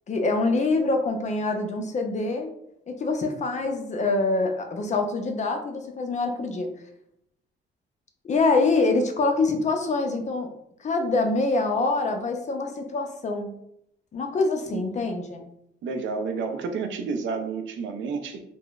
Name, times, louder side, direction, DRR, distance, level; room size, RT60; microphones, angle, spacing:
voice 1, 0.1-2.5 2.9-6.7 8.2-10.5 10.8-13.5 14.1-15.4, left 3 dB, 35° left, 5 dB, 0.5 m, -25 dB
voice 2, 14.7-15.1 15.8-18.4, right 4 dB, 70° right, 6 dB, 0.4 m, -30 dB
3.7 x 2.0 x 2.3 m, 0.76 s
cardioid pair, 90°, 20 cm